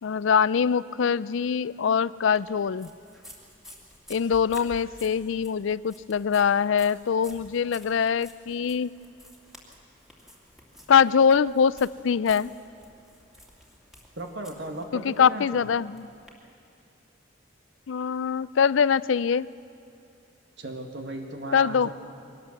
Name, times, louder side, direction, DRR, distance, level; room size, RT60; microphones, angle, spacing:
voice 1, 0.0-2.9 4.1-8.9 10.9-12.5 14.9-16.1 17.9-19.5 21.5-21.9, left 7 dB, 75° left, 19 dB, 0.4 m, -23 dB
sound 1, 2.3-16.3, equal, ahead, 2.5 m, -51 dB
voice 2, 14.2-15.6 20.6-21.9, right 1 dB, 60° right, 3 dB, 1.9 m, -36 dB
23.0 x 18.5 x 7.3 m, 2.4 s
head